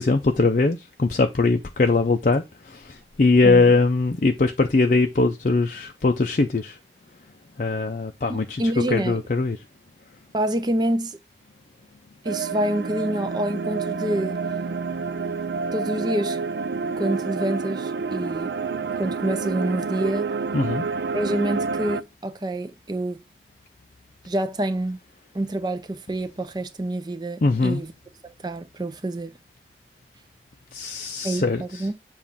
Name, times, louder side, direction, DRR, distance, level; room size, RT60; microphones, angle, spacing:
voice 1, 0.0-6.8 7.6-8.6 8.9-9.6 20.5-20.8 27.4-27.8 30.7-31.9, left 3 dB, 45° left, 0.5 m, -21 dB
voice 2, 8.3-9.2 10.3-11.2 12.2-14.4 15.7-16.4 17.0-18.5 19.0-20.3 21.1-23.2 24.3-25.0 25.3-27.9 28.2-29.3 31.2-31.9, right 1 dB, 25° right, 0.6 m, -27 dB
sound 1, 12.3-22.0, right 5 dB, 70° right, 0.4 m, -28 dB
7.2 x 2.5 x 5.6 m
head